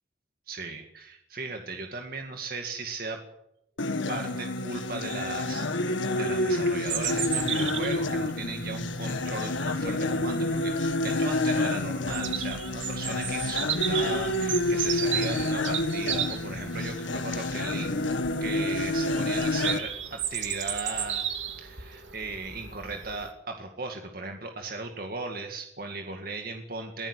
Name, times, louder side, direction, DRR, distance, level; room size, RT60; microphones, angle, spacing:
voice 1, 0.5-3.2 4.1-21.2 21.6-27.1, right 3 dB, 50° right, 4 dB, 2.2 m, -37 dB
sound 1, 3.8-19.8, left 2 dB, 85° left, 1.8 m, -28 dB
Bird vocalization bird call bird song, 6.9-23.3, right 9 dB, 85° right, 2.8 m, -35 dB
23.0 x 16.5 x 8.4 m, 0.80 s
head